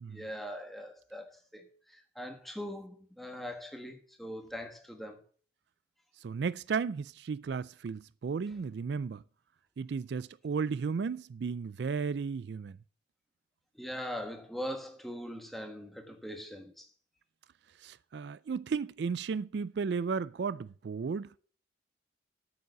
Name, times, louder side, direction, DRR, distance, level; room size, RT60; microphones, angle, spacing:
voice 1, 0.1-5.2 13.8-16.9, equal, ahead, 1.3 m, -41 dB
voice 2, 6.2-9.2 9.8-12.8 17.8-21.3, right 5 dB, 55° right, 0.3 m, -34 dB
8.6 x 6.8 x 6.8 m
head